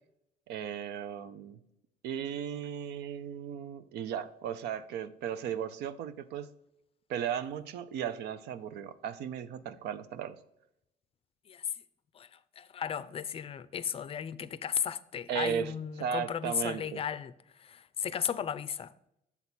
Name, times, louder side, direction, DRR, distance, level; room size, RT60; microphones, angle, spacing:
voice 1, 0.5-1.6 2.0-6.5 7.1-10.4 15.3-15.7 16.0-17.0, right 8 dB, 80° right, 0.6 m, -36 dB
voice 2, 12.6-17.3 17.6-18.9, left 8 dB, 35° left, 0.4 m, -35 dB
7.0 x 4.1 x 6.0 m
cardioid pair, 110°, 17 cm